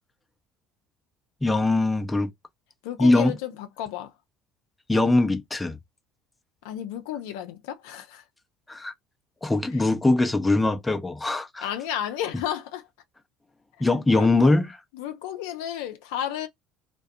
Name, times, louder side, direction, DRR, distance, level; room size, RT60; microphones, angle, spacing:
voice 1, 1.4-2.3 3.0-3.4 4.9-5.8 8.7-8.9 9.4-11.7 13.8-14.8, left 2 dB, 15° left, 0.5 m, -22 dB
voice 2, 2.8-4.1 6.6-8.2 11.6-12.8 14.1-14.5 15.0-16.5, left 11 dB, 75° left, 0.4 m, -32 dB
2.3 x 2.2 x 2.6 m
hypercardioid pair, 70°, 0 cm